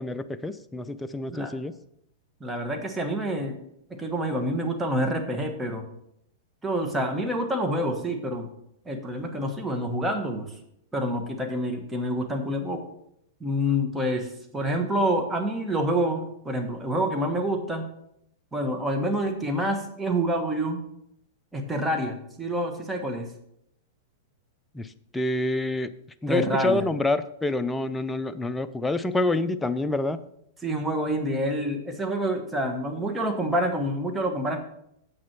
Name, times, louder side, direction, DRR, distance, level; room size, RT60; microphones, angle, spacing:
voice 1, 0.0-1.7 24.7-25.9 26.2-30.2, left 2 dB, 10° left, 10 dB, 0.5 m, -27 dB
voice 2, 2.4-3.6 4.0-5.8 6.6-8.5 8.8-10.5 10.9-12.8 13.4-17.9 18.5-20.8 21.5-23.3 26.3-26.8 30.6-34.6, equal, 10° right, 4 dB, 1.3 m, -27 dB
7.8 x 6.2 x 6.0 m, 0.75 s
hypercardioid pair, 130°, 0 cm